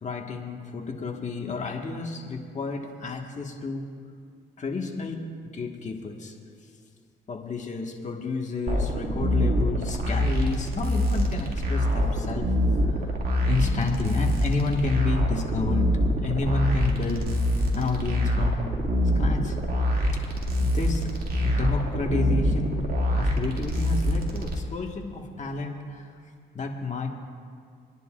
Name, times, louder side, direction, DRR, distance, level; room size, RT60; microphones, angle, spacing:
voice 1, 0.0-3.9 4.6-6.3 7.3-12.5 12.9-13.2 13.4-15.9 16.2-17.5 17.7-18.7 19.1-19.6 20.6-21.1 21.4-22.8 23.1-26.1 26.5-27.1, left 3 dB, 35° left, 1 dB, 1.6 m, -30 dB
sound 1, 8.7-24.6, equal, 50° right, 2.3 m, -25 dB
26.0 x 10.5 x 2.5 m, 2.2 s
cardioid pair, 90°, 20 cm